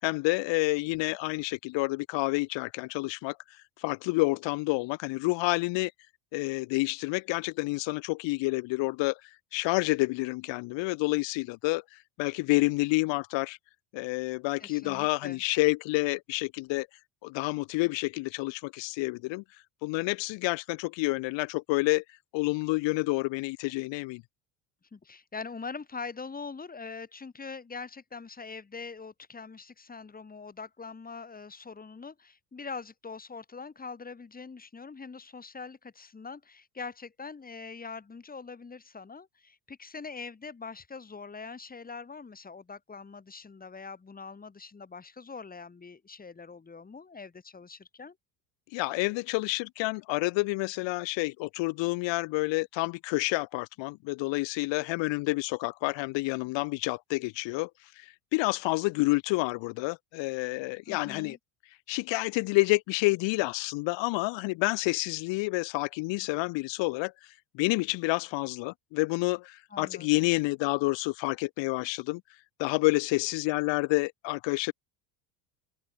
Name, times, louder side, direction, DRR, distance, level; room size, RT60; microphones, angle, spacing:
voice 1, 0.0-3.4 3.8-5.9 6.3-9.2 9.5-13.6 13.9-16.9 17.2-19.4 19.8-22.0 22.3-24.2 48.7-57.7 58.0-61.4 61.9-67.1 67.5-72.2 72.6-74.7, left 24 dB, 70° left, 5.4 m, -29 dB
voice 2, 14.6-15.4 24.9-48.1 60.9-61.4 69.7-70.3, left 4 dB, 20° left, 6.9 m, -43 dB
cardioid pair, 125°, 46 cm